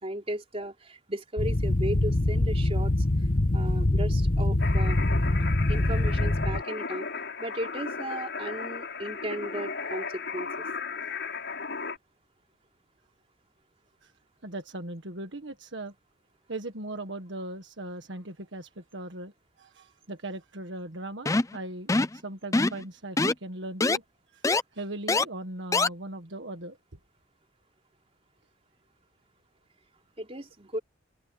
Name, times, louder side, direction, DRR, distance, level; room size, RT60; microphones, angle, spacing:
voice 1, 0.0-2.9 3.5-5.0 5.7-7.1 7.4-10.7 30.2-30.8, right 1 dB, 30° right, 3.8 m, -35 dB
sound 1, 1.4-6.6, left 1 dB, 45° left, 1.3 m, -24 dB
sound 2, 4.6-12.0, left 5 dB, 60° left, 7.2 m, -35 dB
voice 2, 14.4-15.9 16.5-19.3 19.6-24.0 24.3-24.4 24.7-26.8, right 2 dB, 65° right, 1.7 m, -39 dB
sound 3, 21.3-21.6 21.9-22.2 22.5-22.8 23.2-23.3 23.8-24.0 24.4-24.6 25.1-25.2 25.7-25.9, left 3 dB, 15° left, 0.5 m, -23 dB
head